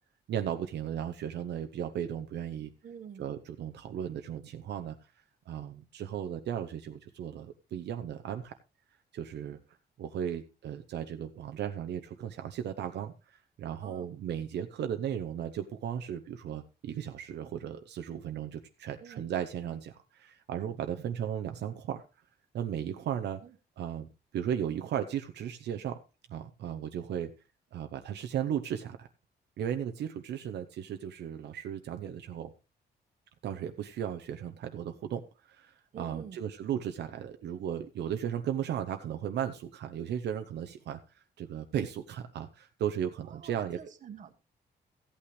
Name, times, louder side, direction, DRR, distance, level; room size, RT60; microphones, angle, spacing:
voice 1, 0.3-2.7 3.2-5.0 5.5-8.5 9.1-9.6 10.0-22.0 22.5-23.4 23.8-26.0 26.3-27.3 27.7-29.1 29.6-32.5 33.4-43.8, right 9 dB, 75° right, 7 dB, 0.8 m, -36 dB
voice 2, 2.8-3.4 13.8-14.1 19.0-19.3 23.4-23.5 35.9-36.4 43.2-44.3, right 8 dB, 45° right, 9 dB, 1.3 m, -47 dB
14.5 x 8.6 x 3.2 m, 0.30 s
wide cardioid pair, 170°, 18 cm